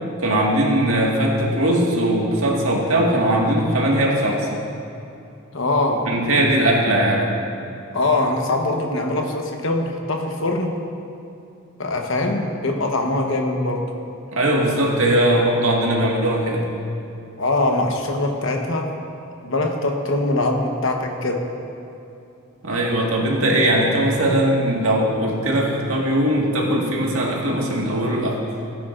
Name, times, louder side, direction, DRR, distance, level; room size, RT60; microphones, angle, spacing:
voice 1, 0.2-4.5 6.1-7.3 14.3-16.7 22.6-28.4, right 1 dB, 80° right, -2 dB, 1.9 m, -20 dB
voice 2, 5.5-6.1 7.9-10.8 11.8-13.9 17.4-18.9 19.4-21.5, left 2 dB, 65° left, 2 dB, 1.1 m, -22 dB
18.0 x 9.3 x 2.6 m, 2.7 s
head